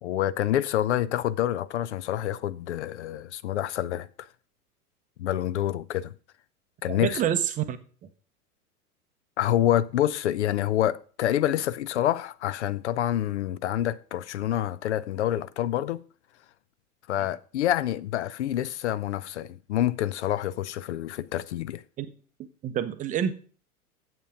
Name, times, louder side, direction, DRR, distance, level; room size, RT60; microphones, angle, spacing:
voice 1, 0.0-4.3 5.2-6.1 6.8-7.2 9.4-16.0 17.1-21.8, left 12 dB, 50° left, 0.5 m, -27 dB
voice 2, 6.9-7.8 22.0-22.1 22.6-23.3, right 9 dB, 20° right, 0.6 m, -27 dB
8.1 x 7.6 x 5.0 m
figure-of-eight pair, 90°, 45 cm